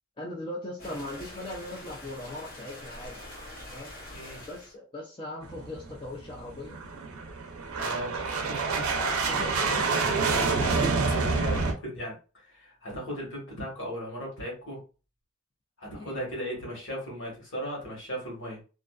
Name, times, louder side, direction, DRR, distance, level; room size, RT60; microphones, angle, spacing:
voice 1, 0.2-3.2 3.7-3.9 4.5-6.8 9.0-9.8 16.0-16.2, left 1 dB, 25° left, -3 dB, 0.5 m, -39 dB
sound 1, 0.8-4.7, left 1 dB, 45° left, 0.9 m, -44 dB
sound 2, 5.4-11.7, right 4 dB, 85° right, 0.5 m, -28 dB
voice 2, 7.8-10.0 10.6-14.8 15.8-18.6, equal, 60° left, -2 dB, 1.3 m, -37 dB
2.5 x 2.4 x 2.3 m, 0.34 s
head